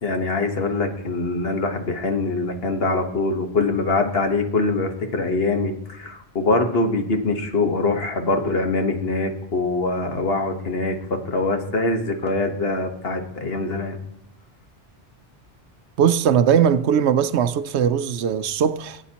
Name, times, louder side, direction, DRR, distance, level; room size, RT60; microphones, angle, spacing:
voice 1, 0.0-14.0, left 3 dB, 60° left, 1.4 m, -23 dB
voice 2, 16.0-19.0, right 8 dB, 80° right, 0.9 m, -19 dB
17.0 x 8.8 x 2.9 m
omnidirectional pair, 1.1 m